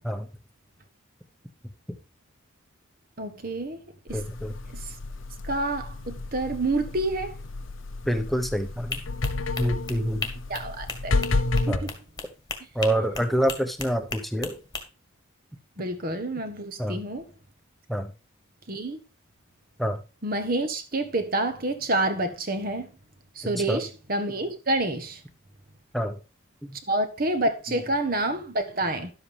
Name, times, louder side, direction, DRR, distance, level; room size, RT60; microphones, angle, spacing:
voice 1, 3.2-3.8 4.1-4.2 4.7-4.8 5.5-7.3 10.5-11.2 11.7-11.9 15.8-17.2 18.7-19.0 20.2-22.9 23.3-25.2 26.9-29.1, right 2 dB, 45° right, 1.4 m, -28 dB
sound 1, 4.1-11.8, left 2 dB, 70° left, 0.9 m, -31 dB
voice 2, 4.1-4.5 8.1-9.0 9.6-10.3 11.7-11.9 12.7-14.6 16.8-17.0 17.9-18.1 19.8-20.0 23.4-23.8 25.9-26.2 27.7-27.8, right 1 dB, ahead, 1.0 m, -27 dB
sound 2, 8.9-14.8, left 4 dB, 20° left, 1.6 m, -36 dB
11.5 x 7.9 x 3.5 m
head